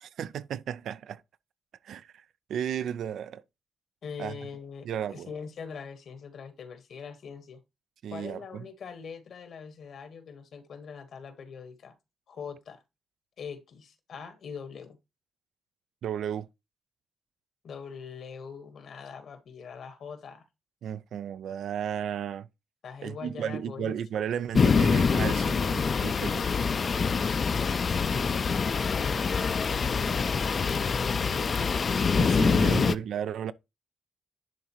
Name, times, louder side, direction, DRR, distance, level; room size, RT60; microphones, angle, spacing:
voice 1, 0.0-1.2 1.8-2.2 2.5-3.4 4.2-4.4 4.8-5.3 8.0-8.6 16.0-16.5 20.8-22.5 23.0-26.5 32.1-33.5, right 9 dB, 85° right, 0.4 m, -34 dB
voice 2, 4.0-7.6 8.1-12.0 12.3-12.8 13.4-15.0 17.6-20.5 22.8-23.9 27.0-29.4 29.7-33.0, left 6 dB, 75° left, 1.3 m, -42 dB
sound 1, 24.5-32.9, left 5 dB, 50° left, 0.4 m, -25 dB
10.5 x 3.8 x 3.0 m
cardioid pair, 70°, 0 cm